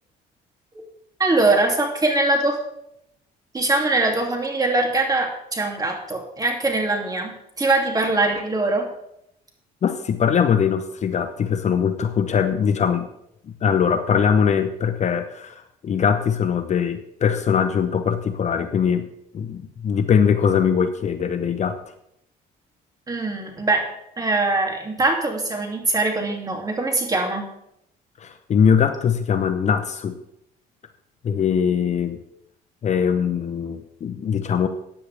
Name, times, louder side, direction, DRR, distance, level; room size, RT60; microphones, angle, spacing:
voice 1, 1.2-2.6 3.5-8.9 23.1-23.9 24.2-27.5, right 2 dB, 20° right, 2 dB, 2.8 m, -22 dB
voice 2, 9.8-13.1 13.5-19.1 19.3-21.8 28.2-30.2 31.2-32.2 32.8-34.7, left 7 dB, 45° left, 9 dB, 0.9 m, -21 dB
15.0 x 9.5 x 3.5 m, 0.79 s
cardioid pair, 110°, 17 cm